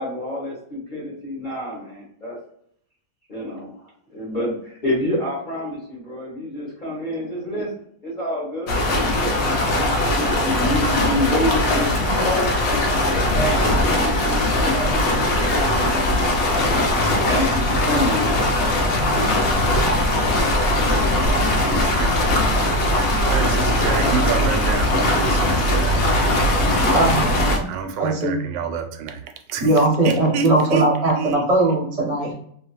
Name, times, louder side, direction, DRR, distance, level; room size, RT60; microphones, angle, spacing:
voice 1, 0.0-2.4 3.3-3.7 4.1-7.7 8.0-9.3 9.7-12.5 13.0-16.6 17.1-18.5, left 1 dB, 35° left, -5 dB, 0.8 m, -28 dB
sound 1, 8.7-27.6, left 1 dB, 75° left, 0.6 m, -20 dB
voice 2, 21.6-22.2 23.2-26.0 26.8-27.2 27.7-31.5, right 5 dB, 85° right, 6 dB, 1.2 m, -29 dB
voice 3, 26.9-27.7 28.0-28.4 29.6-32.3, right 2 dB, 30° right, -3 dB, 0.7 m, -19 dB
2.8 x 2.4 x 2.9 m, 0.65 s
omnidirectional pair, 1.9 m